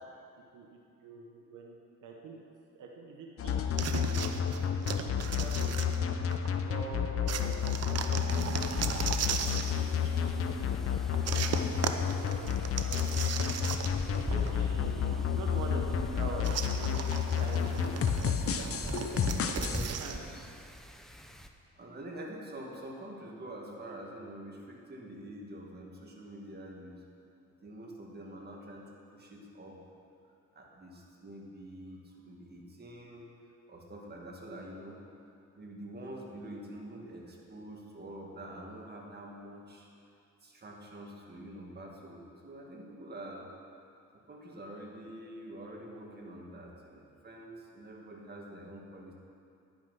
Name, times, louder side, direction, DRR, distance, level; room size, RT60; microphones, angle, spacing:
voice 1, 1.0-1.7 2.0-2.3 2.7-4.3 4.9-5.0 5.4-5.8 6.7-7.4 9.4-11.1 11.3-12.5 12.8-13.5 14.1-17.1 17.4-18.0 19.5-20.2, right 4 dB, 85° right, 0 dB, 1.2 m, -44 dB
sound 1, 3.4-19.8, left 7 dB, 50° left, 0.7 m, -31 dB
sound 2, 3.8-6.5 7.3-9.8 11.3-14.2 14.5-14.6 16.4-20.2, right 7 dB, 55° right, 0.8 m, -36 dB
Wind, 8.3-21.5, left 1 dB, ahead, 0.7 m, -43 dB
voice 2, 14.7-15.0 17.5-17.8 21.7-26.9 27.6-28.8 29.1-29.8 30.5-33.3 33.7-35.0 35.5-39.9 40.4-43.5 44.3-49.1, right 1 dB, 35° right, -1 dB, 2.2 m, -46 dB
10.5 x 8.9 x 5.7 m, 2.5 s
cardioid pair, 90°, 30 cm